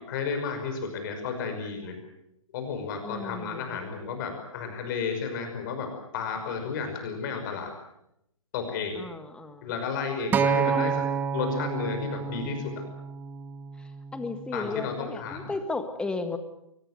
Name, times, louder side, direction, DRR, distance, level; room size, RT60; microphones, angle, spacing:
voice 1, 0.1-2.0 2.5-5.9 6.1-7.7 8.5-9.0 9.6-10.9 11.3-12.7 14.5-15.5, left 5 dB, 35° left, 5 dB, 5.7 m, -32 dB
voice 2, 3.0-3.9 9.0-9.7 10.6-11.0 13.8-16.4, left 3 dB, 5° left, 9 dB, 1.7 m, -35 dB
Acoustic guitar, 10.3-14.6 15.4-15.5, right 7 dB, 10° right, 0.9 m, -29 dB
23.0 x 20.0 x 8.1 m, 0.80 s
figure-of-eight pair, 135°, 18 cm